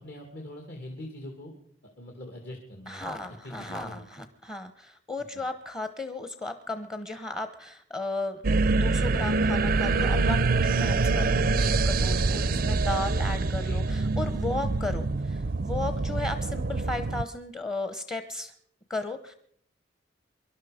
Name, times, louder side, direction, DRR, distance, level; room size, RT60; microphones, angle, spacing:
voice 1, 0.0-1.5 2.0-3.0 3.4-4.0 5.3-5.4 13.4-13.9, left 1 dB, 60° left, 1 dB, 2.3 m, -42 dB
voice 2, 2.9-18.5 18.9-19.3, left 2 dB, 20° left, 9 dB, 0.9 m, -35 dB
sound 1, 8.4-17.2, right 3 dB, 50° right, 0.5 m, -25 dB
24.0 x 12.0 x 5.1 m, 0.65 s
head